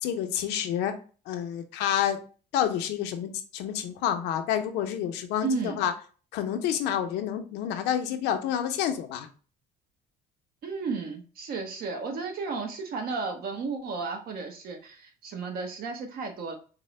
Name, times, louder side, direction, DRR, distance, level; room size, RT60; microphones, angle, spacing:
voice 1, 0.0-0.9 1.3-2.2 2.5-5.9 6.3-9.3, left 10 dB, 90° left, 7 dB, 0.6 m, -28 dB
voice 2, 5.4-5.8 10.6-16.5, right 4 dB, 65° right, 4 dB, 0.9 m, -33 dB
4.2 x 2.0 x 3.1 m, 0.38 s
cardioid pair, 110°, 17 cm